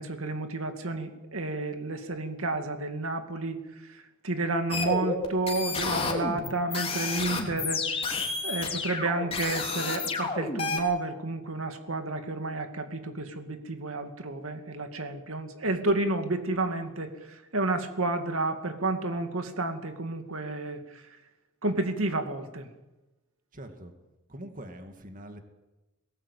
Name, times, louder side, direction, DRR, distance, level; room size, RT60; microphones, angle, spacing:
voice 1, 0.0-3.6 3.9-8.0 8.4-21.0 21.6-22.7, right 2 dB, 85° right, 6 dB, 2.4 m, -31 dB
sound 1, 4.7-10.8, left 4 dB, 30° left, 3.2 m, -31 dB
voice 2, 23.5-23.9 24.3-25.4, right 1 dB, 40° right, 5 dB, 2.2 m, -43 dB
22.0 x 18.5 x 8.5 m, 1.1 s
head